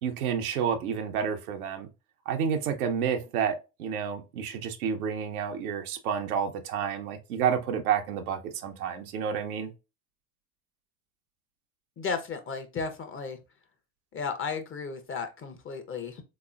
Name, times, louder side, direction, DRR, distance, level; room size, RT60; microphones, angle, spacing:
voice 1, 0.0-1.9 2.3-9.7, right 7 dB, 80° right, 0.8 m, -30 dB
voice 2, 12.0-13.4 14.1-16.2, left 5 dB, 30° left, 0.8 m, -34 dB
3.5 x 3.0 x 2.4 m
hypercardioid pair, 75°, 43 cm